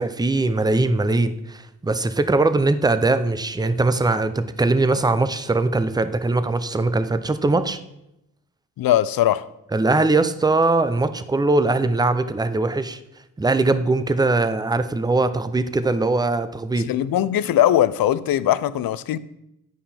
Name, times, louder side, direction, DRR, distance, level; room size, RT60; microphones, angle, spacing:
voice 1, 0.0-7.8 9.7-13.0 13.4-16.9, right 2 dB, 10° right, 0.6 m, -21 dB
voice 2, 8.8-9.4 16.9-19.2, left 12 dB, 70° left, 0.5 m, -20 dB
9.5 x 5.3 x 4.3 m
cardioid pair, 70°, 36 cm